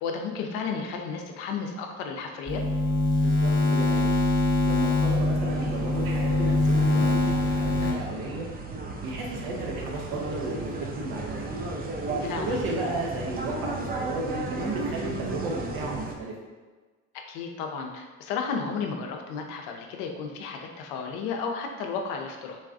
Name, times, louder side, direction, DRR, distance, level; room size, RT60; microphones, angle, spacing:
voice 1, 0.0-2.6 12.3-12.6 17.3-22.6, left 5 dB, 70° left, 3 dB, 0.6 m, -33 dB
sound 1, 2.5-7.9, left 2 dB, 30° left, 0.8 m, -23 dB
voice 2, 3.2-4.1 4.6-8.5 9.0-10.7 10.9-11.5 12.2-16.3, right 2 dB, 65° right, -1 dB, 0.9 m, -33 dB
sound 2, 5.1-16.1, right 2 dB, 25° right, 0.5 m, -35 dB
4.0 x 2.3 x 2.5 m, 1.3 s
hypercardioid pair, 60°, 39 cm